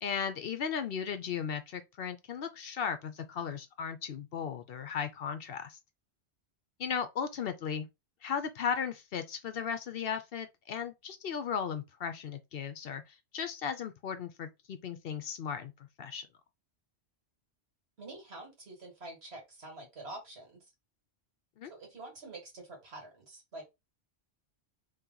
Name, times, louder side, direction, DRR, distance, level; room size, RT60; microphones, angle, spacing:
voice 1, 0.0-5.8 6.8-7.9 8.2-15.7 16.0-16.3 21.6-21.7, left 7 dB, 60° left, 0.7 m, -36 dB
voice 2, 18.0-20.6 21.7-23.6, right 2 dB, 65° right, 1.9 m, -47 dB
3.1 x 2.9 x 3.7 m
omnidirectional pair, 1.2 m